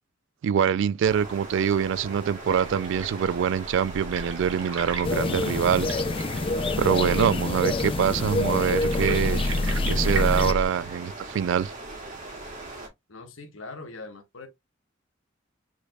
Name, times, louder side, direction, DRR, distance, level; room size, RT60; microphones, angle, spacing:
voice 1, 0.4-5.9 6.8-9.4 9.9-11.7, right 8 dB, 65° right, 0.3 m, -24 dB
sound 1, 1.0-12.9, right 2 dB, 40° right, 2.2 m, -40 dB
sound 2, 2.5-10.6, equal, 85° right, 1.4 m, -31 dB
sound 3, 5.0-10.5, left 3 dB, 25° left, 0.3 m, -28 dB
voice 2, 13.1-14.5, left 3 dB, 80° left, 1.2 m, -41 dB
4.6 x 4.5 x 2.2 m
head